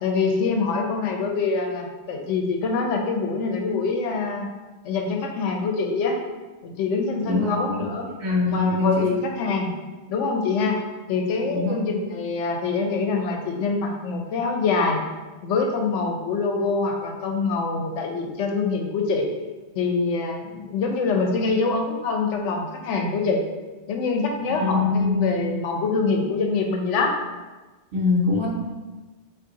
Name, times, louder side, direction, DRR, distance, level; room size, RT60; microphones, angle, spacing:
voice 1, 0.0-4.5 4.8-6.2 6.6-8.1 8.5-9.7 10.1-10.8 11.1-15.0 15.4-19.3 19.8-23.4 23.9-27.2, left 4 dB, 80° left, 2 dB, 0.9 m, -25 dB
voice 2, 7.2-7.9 8.2-9.2 11.5-11.7 24.6-25.5 27.9-28.5, left 3 dB, 65° right, -3 dB, 1.1 m, -23 dB
3.6 x 2.6 x 3.8 m, 1.2 s
omnidirectional pair, 1.2 m